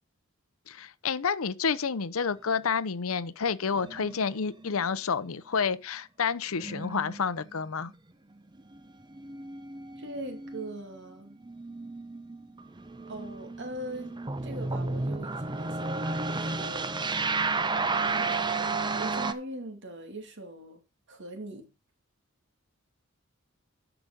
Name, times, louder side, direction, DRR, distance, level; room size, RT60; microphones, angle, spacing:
voice 1, 0.7-7.9, left 6 dB, 70° left, 0.7 m, -29 dB
sound 1, 3.7-4.9 6.6-7.6 7.9-8.0 8.6-19.3, right 3 dB, 20° right, 0.7 m, -33 dB
voice 2, 10.0-11.4 13.1-17.0 18.1-18.4 18.7-20.8 21.1-21.7, right 1 dB, 60° right, 2.5 m, -41 dB
9.9 x 6.0 x 5.2 m
head